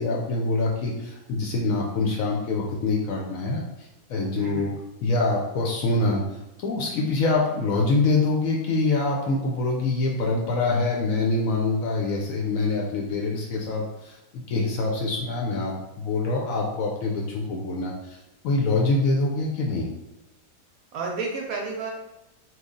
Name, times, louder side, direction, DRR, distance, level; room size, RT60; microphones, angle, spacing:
voice 1, 0.0-4.7 5.0-18.2 18.4-19.9, left 3 dB, 70° left, -1 dB, 0.8 m, -25 dB
voice 2, 4.3-4.8 20.9-21.9, right 3 dB, 70° right, 0 dB, 0.9 m, -31 dB
3.0 x 2.3 x 3.7 m, 0.99 s
omnidirectional pair, 1.7 m